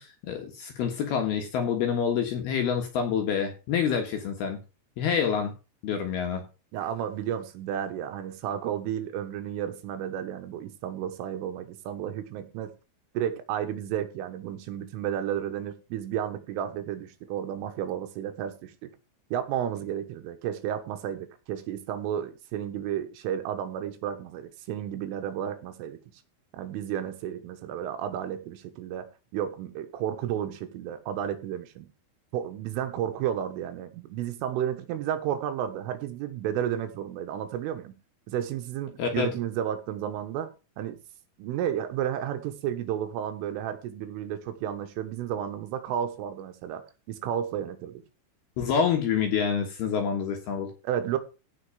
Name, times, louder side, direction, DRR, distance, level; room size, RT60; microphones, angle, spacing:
voice 1, 0.0-4.6 5.0-5.5 5.8-6.4 39.0-39.3 48.6-50.7, left 7 dB, 65° left, 2.8 m, -27 dB
voice 2, 6.7-12.7 13.2-18.9 19.3-26.0 26.5-29.1 29.3-31.9 32.3-37.9 38.3-40.5 40.8-41.0 41.4-48.0 50.8-51.2, right 10 dB, 80° right, 3.8 m, -32 dB
16.0 x 5.5 x 5.0 m
omnidirectional pair, 5.8 m